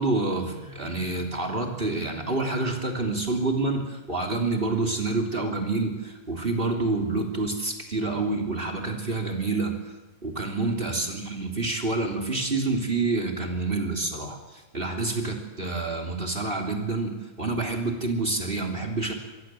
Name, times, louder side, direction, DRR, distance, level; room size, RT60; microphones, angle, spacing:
voice 1, 0.0-9.7 10.2-19.1, right 3 dB, 15° right, 4 dB, 3.1 m, -28 dB
25.5 x 21.5 x 7.7 m, 1.2 s
omnidirectional pair, 3.7 m